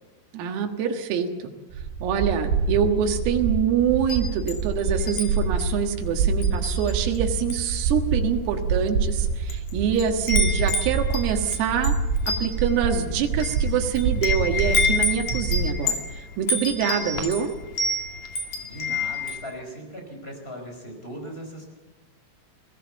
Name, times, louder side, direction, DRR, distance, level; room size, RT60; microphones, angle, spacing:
voice 1, 0.3-1.5 2.0-12.0 12.3-17.5, right 8 dB, 90° right, 3 dB, 4.3 m, -25 dB
sound 1, 1.7-15.7, right 4 dB, 70° right, 5.8 m, -26 dB
Wind chime, 4.0-5.3 5.6-5.8 6.4-7.2 7.4-7.8 8.5-8.6 9.3-9.7 9.9-19.4, left 3 dB, 45° left, 3.1 m, -28 dB
voice 2, 18.6-21.6, equal, 10° left, 3 dB, 4.4 m, -39 dB
22.5 x 18.5 x 8.0 m, 1.2 s
omnidirectional pair, 5.8 m